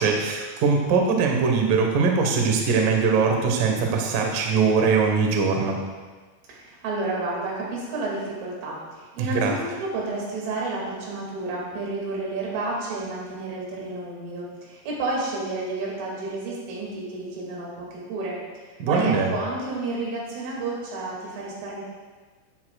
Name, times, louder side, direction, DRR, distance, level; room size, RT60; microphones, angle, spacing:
voice 1, 0.0-5.8 9.2-9.5 18.8-19.3, right 5 dB, 90° right, 1 dB, 1.8 m, -21 dB
voice 2, 6.5-18.4 18.6-21.8, right 2 dB, 75° right, -3 dB, 4.8 m, -31 dB
15.5 x 9.5 x 2.4 m, 1.4 s
omnidirectional pair, 6.0 m